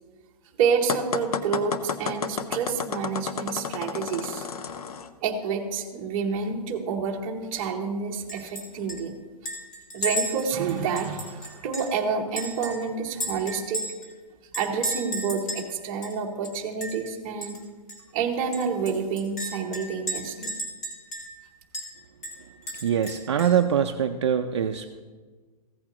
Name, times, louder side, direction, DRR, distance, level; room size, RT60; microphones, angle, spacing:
voice 1, 0.6-4.5 5.2-9.1 9.9-13.8 14.5-17.6 18.1-20.5, right 5 dB, 15° right, 0 dB, 0.8 m, -28 dB
sound 1, 0.9-5.1, left 6 dB, 65° left, 0.7 m, -31 dB
Chink clink, 8.3-8.6 8.9-9.0 9.5-12.0 12.4-14.1 14.5-15.7 16.0-16.1 16.4-17.1 17.4-17.6 17.9-18.0 18.5-21.4 21.7-21.9 22.2-23.6, right 1 dB, 25° left, 2.1 m, -34 dB
voice 2, 22.7-25.0, right 8 dB, 45° right, 5 dB, 0.4 m, -24 dB
15.0 x 8.5 x 2.9 m, 1.4 s
hypercardioid pair, 170°, 21 cm